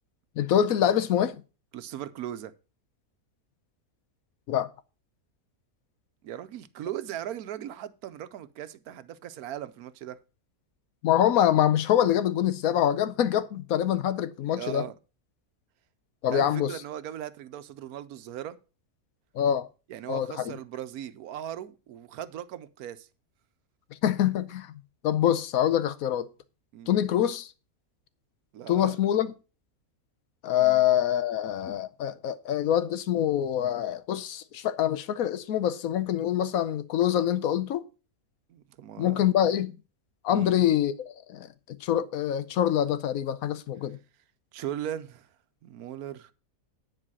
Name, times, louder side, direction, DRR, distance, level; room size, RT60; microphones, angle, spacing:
voice 1, 0.4-1.4 4.5-4.7 11.0-14.9 16.2-16.7 19.3-19.7 20.1-20.5 24.0-24.7 25.0-26.3 26.9-27.5 28.7-29.3 30.4-37.8 39.0-39.7 40.2-44.0, left 10 dB, 75° left, 1.1 m, -25 dB
voice 2, 1.7-2.5 6.2-10.2 14.5-14.9 16.3-18.6 19.9-23.1 26.7-26.9 28.5-29.0 30.6-30.8 38.5-39.3 40.3-40.6 44.5-45.3 45.6-46.3, right 11 dB, 85° right, 1.2 m, -38 dB
9.8 x 4.9 x 6.0 m
omnidirectional pair, 1.5 m